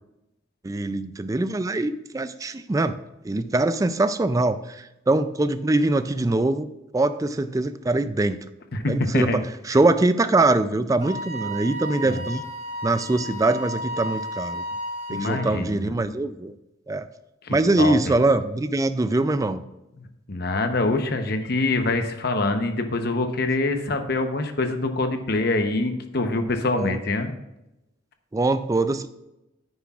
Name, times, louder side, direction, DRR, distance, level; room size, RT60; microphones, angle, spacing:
voice 1, 0.6-3.0 3.2-6.7 6.9-8.4 8.9-12.4 12.8-14.6 15.1-16.5 16.9-17.1 17.5-19.6 26.7-27.0 28.3-29.1, right 2 dB, 15° right, 12 dB, 0.3 m, -23 dB
voice 2, 8.7-9.4 12.0-12.2 15.1-16.1 17.4-18.1 20.0-27.3, left 2 dB, 55° left, 6 dB, 0.9 m, -25 dB
Wind instrument woodwind instrument, 11.0-15.5, equal, 35° right, 1.7 m, -33 dB
9.8 x 9.4 x 2.4 m, 0.93 s
head